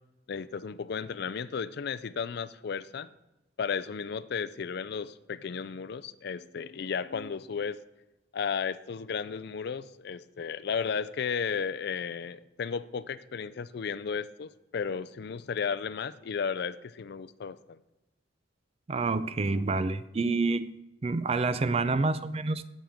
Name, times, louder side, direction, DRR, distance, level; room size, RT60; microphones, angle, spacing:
voice 1, 0.3-3.1 3.6-7.8 8.3-17.8, left 6 dB, 55° left, 15 dB, 0.4 m, -34 dB
voice 2, 18.9-20.7 21.0-22.7, right 3 dB, 30° right, 14 dB, 0.4 m, -28 dB
17.5 x 7.3 x 3.5 m, 1.0 s
head